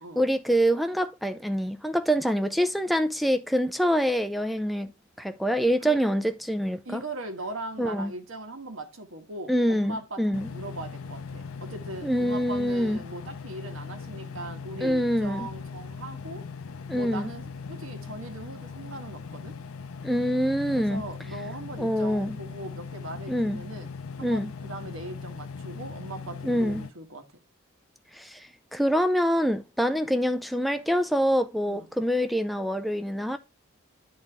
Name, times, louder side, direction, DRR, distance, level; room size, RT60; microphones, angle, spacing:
voice 1, 0.2-4.9 5.2-7.0 7.8-8.1 9.5-10.5 12.0-13.0 14.8-15.5 16.9-17.3 20.0-21.0 21.8-22.4 23.3-23.6 24.2-24.5 26.4-26.9 28.1-28.5 28.7-33.4, equal, ahead, 0.4 m, -25 dB
voice 2, 6.8-16.5 16.9-19.6 20.7-23.9 24.2-27.4 31.7-31.9, right 2 dB, 65° right, 1.4 m, -40 dB
sound 1, 10.3-26.9, left 5 dB, 85° left, 0.6 m, -39 dB
10.5 x 4.1 x 3.5 m
head